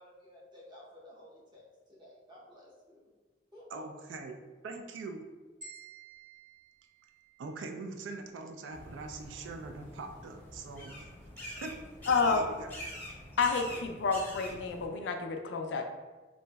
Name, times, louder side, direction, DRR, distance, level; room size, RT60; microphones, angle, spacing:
voice 1, 0.0-1.7 2.0-3.1 3.5-3.8, left 1 dB, 25° right, -6 dB, 0.7 m, -54 dB
voice 2, 3.7-4.4 4.6-5.2 7.4-10.9 11.4-11.7 12.2-12.7, right 3 dB, 80° right, 4 dB, 0.3 m, -42 dB
sound 1, 5.6-7.8, right 5 dB, 40° right, 1.4 m, -53 dB
sound 2, 8.7-14.9, left 1 dB, 10° left, 0.6 m, -46 dB
voice 3, 12.1-12.5 13.4-15.8, left 4 dB, 70° left, 4 dB, 0.3 m, -29 dB
2.9 x 2.6 x 2.2 m, 1.3 s
head